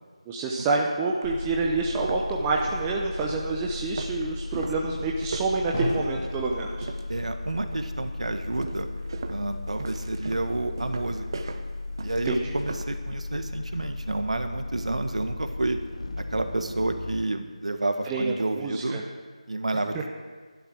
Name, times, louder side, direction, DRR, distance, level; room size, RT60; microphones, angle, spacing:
voice 1, 0.3-6.9 12.2-12.4 18.1-19.0, right 3 dB, 10° right, -1 dB, 0.6 m, -27 dB
sound 1, 0.6-0.7 1.2-1.3 1.8-7.3 7.6-8.0 8.6-13.0, right 3 dB, 40° right, 0.9 m, -39 dB
sound 2, 1.2-17.2, left 3 dB, 65° left, 0.7 m, -36 dB
Drum, 5.7-9.4, left 1 dB, 25° left, 2.1 m, -37 dB
voice 2, 7.1-8.9 9.3-11.4 12.0-15.8 16.3-19.0 19.5-20.1, right 2 dB, 65° right, 7 dB, 1.5 m, -30 dB
12.0 x 11.5 x 6.2 m, 1.5 s
figure-of-eight pair, 165°, 4 cm